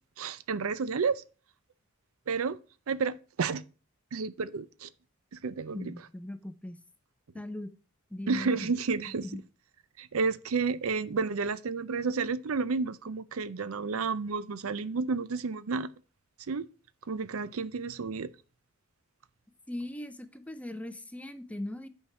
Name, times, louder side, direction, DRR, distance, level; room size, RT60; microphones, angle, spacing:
voice 1, 0.2-1.2 2.3-2.6 2.9-3.6 4.1-4.9 5.4-5.9 8.3-9.2 10.0-15.9 16.5-16.7 17.1-18.3, right 4 dB, 75° right, 0.5 m, -31 dB
voice 2, 5.7-6.8 7.3-7.7 8.1-8.7 9.2-9.4 19.7-21.9, left 1 dB, 5° left, 0.5 m, -39 dB
8.4 x 4.6 x 5.8 m
head